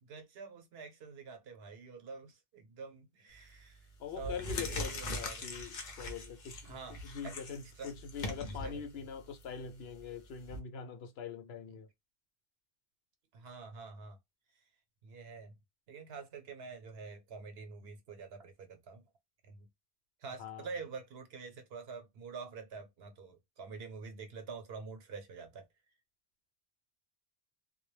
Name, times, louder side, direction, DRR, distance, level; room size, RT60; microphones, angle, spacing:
voice 1, 0.0-3.9 4.2-5.4 6.6-7.3 7.8-7.9 8.6-8.8 13.3-14.2 15.0-15.6 15.9-19.1 19.4-19.7 20.2-25.7, right 4 dB, 80° right, 0.9 m, -47 dB
sound 1, 3.3-3.6 4.1-10.6, left 2 dB, 50° left, 0.7 m, -42 dB
voice 2, 4.0-11.9 20.4-20.7, left 6 dB, 80° left, 0.8 m, -43 dB
2.2 x 2.0 x 3.1 m
omnidirectional pair, 1.0 m